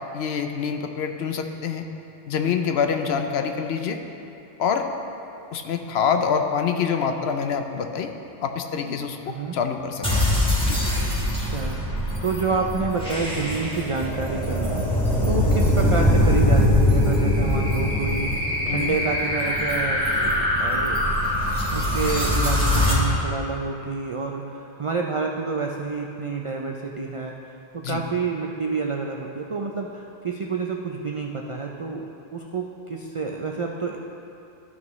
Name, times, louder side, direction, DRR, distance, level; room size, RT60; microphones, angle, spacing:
voice 1, 0.1-1.9 2.3-4.0 4.6-4.9 5.5-8.1 8.4-10.1 10.6-10.8 18.7-19.0 27.8-28.0, left 6 dB, 70° left, 5 dB, 0.8 m, -26 dB
voice 2, 9.2-9.6 11.2-11.8 12.2-21.1 21.4-34.0, right 4 dB, 60° right, 1 dB, 0.3 m, -29 dB
sound 1, 10.0-22.9, left 1 dB, 5° left, 1.5 m, -22 dB
13.5 x 6.0 x 3.1 m, 2.8 s
omnidirectional pair, 1.1 m